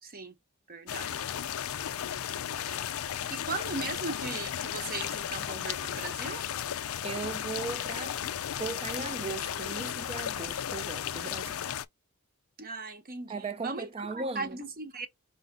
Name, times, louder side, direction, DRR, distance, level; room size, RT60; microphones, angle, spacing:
voice 1, 0.0-0.3 0.7-1.3 2.4-2.8 3.1-6.5 12.6-15.1, right 3 dB, 40° right, 1.1 m, -38 dB
sound 1, 0.9-11.8, left 10 dB, 70° left, 0.4 m, -35 dB
voice 2, 7.0-8.2 8.6-11.6 13.3-14.6, right 4 dB, 25° right, 0.6 m, -37 dB
4.8 x 3.8 x 2.3 m
head